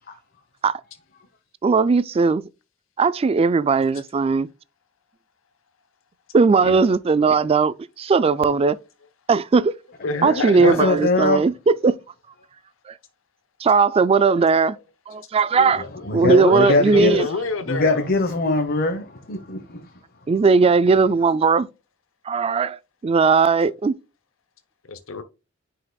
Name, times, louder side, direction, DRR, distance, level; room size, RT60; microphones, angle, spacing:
voice 1, 1.6-2.4 3.0-4.5 6.3-8.8 9.3-9.7 10.2-11.9 13.6-14.8 15.1-15.8 16.1-17.3 20.3-21.7 22.3-22.8 23.0-23.9, right 4 dB, 30° right, 0.3 m, -18 dB
voice 2, 10.0-10.9 16.2-18.0 24.9-25.2, left 3 dB, 80° left, 0.7 m, -26 dB
voice 3, 10.6-11.5 15.6-17.3 17.6-20.0, left 2 dB, 50° left, 1.0 m, -23 dB
9.7 x 4.8 x 2.3 m
head